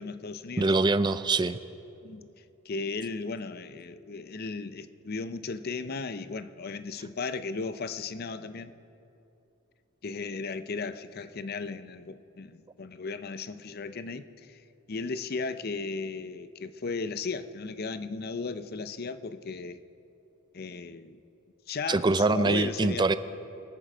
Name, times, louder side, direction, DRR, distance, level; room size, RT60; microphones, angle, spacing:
voice 1, 0.0-0.7 2.0-2.3 2.6-8.8 10.0-14.6 14.9-19.8 20.5-21.2 21.7-23.1, left 4 dB, 50° left, 12 dB, 0.6 m, -36 dB
voice 2, 0.6-1.6 21.9-23.1, right 3 dB, 20° right, 13 dB, 0.4 m, -24 dB
23.5 x 10.0 x 5.0 m, 2.7 s
head